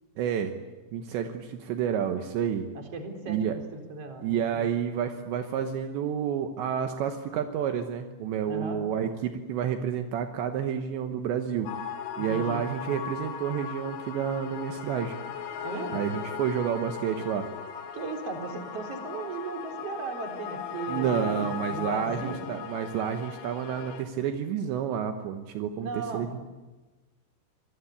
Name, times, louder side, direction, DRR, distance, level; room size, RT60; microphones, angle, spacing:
voice 1, 0.2-0.5 0.9-2.7 3.3-3.5 4.2-11.7 12.2-15.1 15.9-17.5 20.9-26.5, right 8 dB, 75° right, 6 dB, 3.3 m, -30 dB
voice 2, 2.7-4.7 8.5-8.8 12.2-12.6 15.6-16.0 17.9-22.4 25.8-26.3, right 3 dB, 35° right, 4 dB, 4.4 m, -36 dB
sound 1, 11.7-24.0, left 8 dB, 80° left, 4.0 m, -38 dB
26.5 x 21.0 x 8.5 m, 1.2 s
omnidirectional pair, 5.4 m